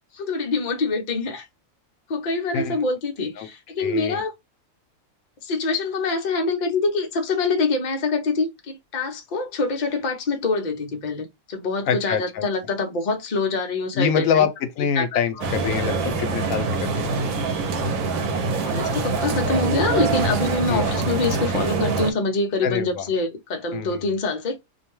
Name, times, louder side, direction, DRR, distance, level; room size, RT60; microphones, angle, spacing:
voice 1, 0.1-1.5 2.1-4.3 5.4-14.5 15.0-15.2 18.6-24.6, left 3 dB, 45° left, 0.6 m, -25 dB
voice 2, 3.8-4.2 11.9-12.5 14.0-17.2 20.7-20.9 22.6-23.1 23.7-24.0, left 7 dB, 75° left, 1.0 m, -25 dB
sound 1, 15.4-22.1, right 3 dB, 85° right, 1.1 m, -24 dB
2.5 x 2.2 x 2.9 m
omnidirectional pair, 1.4 m